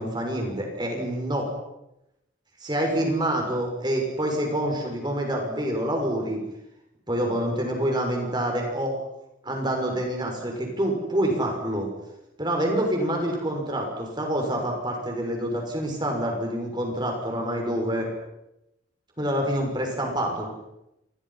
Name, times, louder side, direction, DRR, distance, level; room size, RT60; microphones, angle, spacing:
voice 1, 0.0-1.5 2.6-6.4 7.1-9.0 9.4-11.9 12.4-18.1 19.2-20.5, right 1 dB, 20° right, 1 dB, 6.5 m, -27 dB
29.5 x 28.0 x 5.9 m, 0.87 s
head